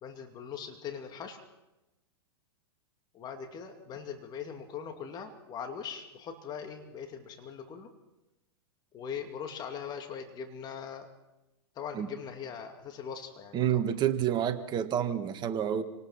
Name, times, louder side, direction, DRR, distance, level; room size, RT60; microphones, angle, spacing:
voice 1, 0.0-1.4 3.1-7.9 8.9-11.1 11.7-13.8, left 7 dB, 30° left, 5 dB, 2.6 m, -41 dB
voice 2, 13.5-15.8, right 10 dB, 30° right, 9 dB, 1.7 m, -28 dB
28.0 x 19.0 x 5.8 m, 0.99 s
hypercardioid pair, 110°, 14 cm